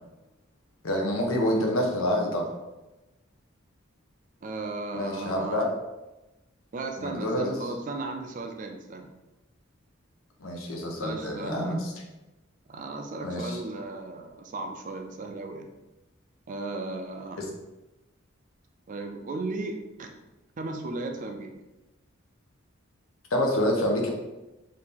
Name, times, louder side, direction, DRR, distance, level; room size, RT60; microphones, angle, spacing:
voice 1, 0.8-2.5 4.9-5.7 7.0-7.6 10.4-11.9 13.2-13.6 23.3-24.1, left 1 dB, 85° left, 1 dB, 0.7 m, -27 dB
voice 2, 4.4-5.7 6.7-9.1 11.0-11.8 12.7-15.7 16.5-17.4 18.9-20.1 20.6-21.5, right 2 dB, 40° right, 4 dB, 0.4 m, -35 dB
2.9 x 2.6 x 3.6 m, 1.0 s
head